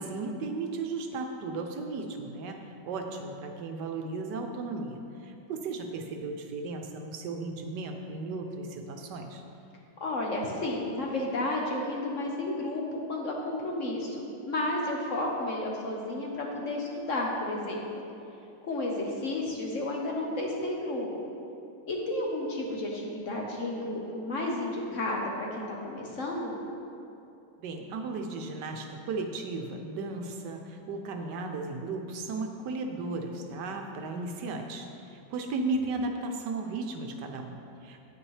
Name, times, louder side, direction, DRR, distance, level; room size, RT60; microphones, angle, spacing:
voice 1, 0.0-9.4 27.6-38.0, right 3 dB, 75° right, 4 dB, 1.2 m, -35 dB
voice 2, 10.0-17.8 18.6-21.1 21.9-26.5, left 1 dB, 50° left, -1 dB, 1.1 m, -32 dB
9.3 x 8.9 x 3.2 m, 2.7 s
omnidirectional pair, 1.9 m